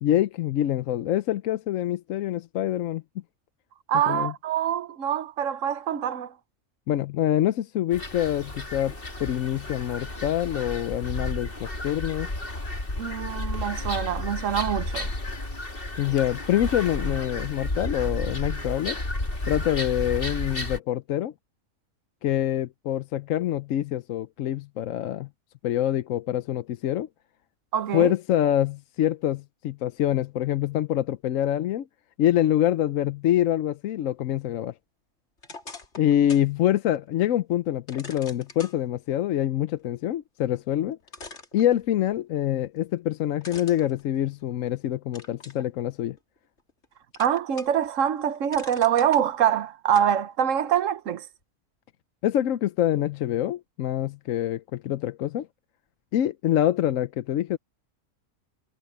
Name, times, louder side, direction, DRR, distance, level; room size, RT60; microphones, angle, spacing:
voice 1, 0.0-3.0 4.1-4.3 6.9-8.9 9.2-12.3 16.0-19.0 19.5-21.3 22.2-25.3 25.6-27.1 27.9-31.9 32.2-34.7 36.0-41.0 41.5-46.2 52.2-55.5 56.1-57.6, left 12 dB, 80° left, 1.0 m, -25 dB
voice 2, 3.9-6.3 13.0-15.1 27.7-28.1 47.2-51.3, right 9 dB, 70° right, 1.3 m, -25 dB
sound 1, 7.9-20.8, left 2 dB, 45° left, 3.2 m, -32 dB
sound 2, 35.4-36.5 36.9-37.0 37.9-38.8 40.5-40.6 41.1-42.2 43.4-44.7 45.1-45.7 46.2-46.8 47.1-47.9 48.2-49.2 49.9-50.1, left 3 dB, 60° left, 2.8 m, -43 dB
omnidirectional pair, 1.4 m